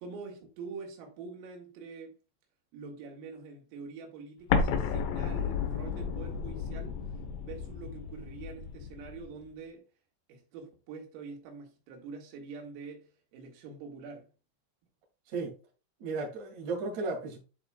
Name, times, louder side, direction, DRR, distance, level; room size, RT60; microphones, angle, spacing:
voice 1, 0.0-2.2 2.7-7.0 7.4-9.8 10.3-14.3, right 4 dB, 80° right, 4.2 m, -45 dB
Explosion, 4.5-9.3, left 6 dB, 75° left, 2.9 m, -32 dB
voice 2, 16.0-17.4, right 3 dB, 45° right, 2.9 m, -34 dB
11.5 x 4.4 x 2.3 m
omnidirectional pair, 5.9 m